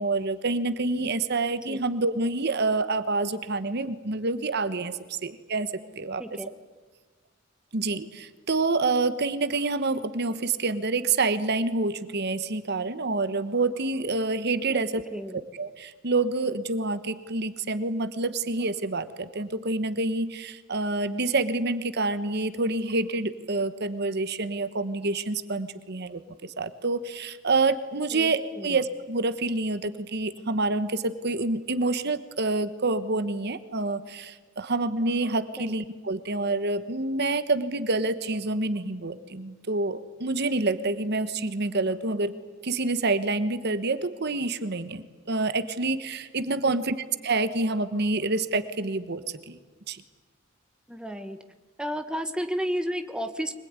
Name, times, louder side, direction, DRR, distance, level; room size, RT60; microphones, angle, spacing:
voice 1, 0.0-6.4 7.7-15.0 15.5-42.3 42.6-46.9 47.2-49.6 49.9-50.0, right 3 dB, 55° right, 12 dB, 1.2 m, -27 dB
voice 2, 28.1-28.7 35.6-35.7 46.6-46.8 50.9-51.4 51.8-53.6, equal, 5° right, 7 dB, 1.3 m, -32 dB
24.5 x 20.5 x 9.6 m, 1.3 s
head